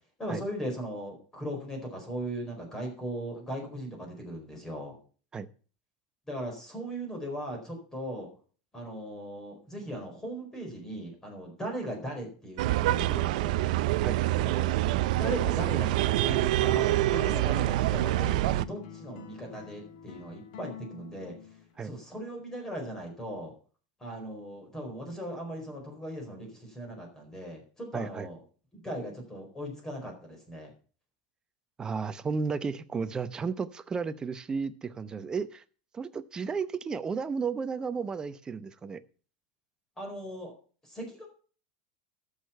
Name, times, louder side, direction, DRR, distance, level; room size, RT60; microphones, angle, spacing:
voice 1, 0.2-5.0 6.3-8.3 8.7-13.6 14.4-14.8 15.1-21.3 21.8-23.5 24.0-28.4 28.7-30.7 40.0-40.5 40.9-41.3, right 1 dB, 10° left, 2 dB, 4.4 m, -38 dB
sound 1, 12.6-18.6, right 15 dB, 70° right, 0.6 m, -26 dB
sound 2, 18.0-22.1, left 7 dB, 65° left, 1.8 m, -47 dB
voice 2, 27.9-28.3 31.8-35.6 35.9-39.0, right 5 dB, 15° right, 11 dB, 0.8 m, -33 dB
13.0 x 6.6 x 5.7 m, 0.40 s
supercardioid pair, 140°, 4 cm